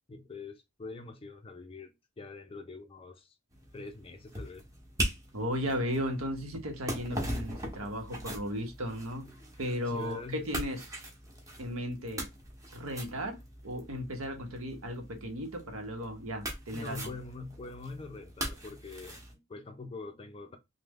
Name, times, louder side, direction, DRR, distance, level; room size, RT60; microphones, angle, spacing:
voice 1, 0.1-3.4 3.7-4.7 9.9-10.6 16.7-20.6, left 3 dB, 25° left, 0.5 m, -44 dB
sound 1, 3.5-19.3, right 1 dB, 15° right, 0.8 m, -41 dB
voice 2, 5.3-10.8 11.6-12.3 12.7-17.1, equal, 70° right, 0.9 m, -35 dB
3.1 x 2.1 x 3.5 m
head